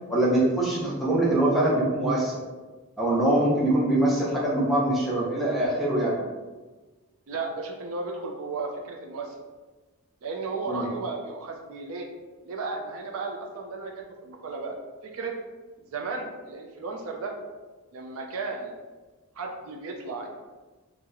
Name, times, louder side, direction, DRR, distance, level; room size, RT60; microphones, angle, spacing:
voice 1, 0.1-2.4 3.0-6.2 10.7-10.9, right 1 dB, ahead, -7 dB, 0.6 m, -23 dB
voice 2, 7.3-9.4 10.2-12.1 12.4-14.8 15.0-15.3 15.9-17.3 17.9-18.8 19.4-20.3, right 3 dB, 70° right, 1 dB, 0.4 m, -34 dB
2.8 x 2.0 x 3.6 m, 1.3 s
head